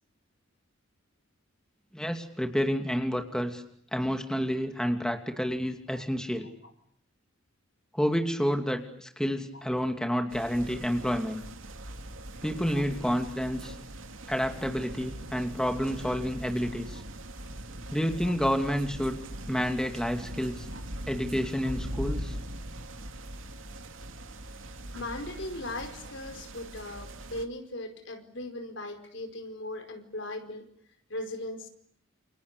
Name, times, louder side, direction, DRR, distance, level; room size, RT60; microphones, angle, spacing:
voice 1, 1.9-3.6 3.9-6.5 7.9-11.4 12.4-13.7 14.3-17.0 17.9-19.2 19.5-20.7 21.1-22.4, equal, 5° left, 5 dB, 2.7 m, -29 dB
sound 1, 10.3-27.5, right 1 dB, 80° right, 2.8 m, -41 dB
voice 2, 24.9-30.7 31.1-31.7, left 1 dB, 65° left, 7 dB, 4.9 m, -38 dB
29.5 x 29.5 x 6.9 m, 0.68 s
head